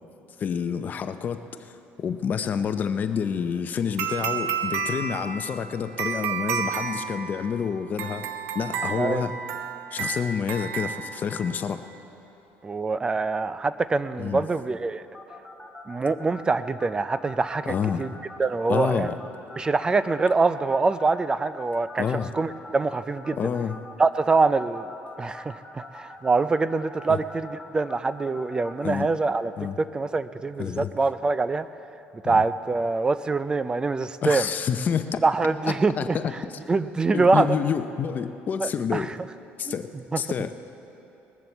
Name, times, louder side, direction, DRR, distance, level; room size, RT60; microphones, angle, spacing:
voice 1, 0.4-8.3 8.5-9.4 9.9-11.9 14.2-14.5 17.7-18.1 18.7-19.1 22.0-22.3 23.4-23.8 27.1-27.2 28.8-29.1 29.6-29.8 30.6-30.9 32.2-32.4 34.2-35.2 35.6-36.3 37.1-39.1 39.6-40.6, left 7 dB, 40° left, 9 dB, 0.7 m, -28 dB
sound 1, 4.0-11.7, right 7 dB, 80° right, 0.8 m, -31 dB
voice 2, 12.6-15.0 15.9-18.1 18.4-19.1 19.6-23.4 24.0-29.5 29.9-31.7 32.2-34.5 35.2-36.2 36.7-37.5 38.6-39.1 39.7-39.8 40.1-40.2, right 3 dB, 20° right, 14 dB, 0.4 m, -24 dB
sound 2, 15.1-28.9, left 2 dB, 5° left, 1.6 m, -43 dB
20.0 x 7.6 x 7.1 m, 2.9 s
cardioid pair, 125°, 4 cm